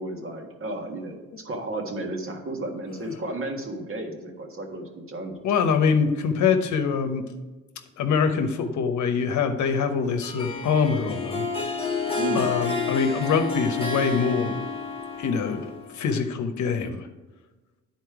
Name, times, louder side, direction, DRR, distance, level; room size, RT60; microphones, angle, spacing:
voice 1, 0.0-5.4 12.1-12.5, right 2 dB, 45° right, 2 dB, 1.6 m, -33 dB
voice 2, 5.4-7.2 8.0-11.5 12.3-14.6 15.2-15.6 15.9-17.1, left 6 dB, 70° left, 6 dB, 0.9 m, -24 dB
Harp, 10.2-16.0, left 4 dB, 20° left, 1.1 m, -30 dB
9.9 x 4.3 x 4.8 m, 1.2 s
cardioid pair, 90°, 30 cm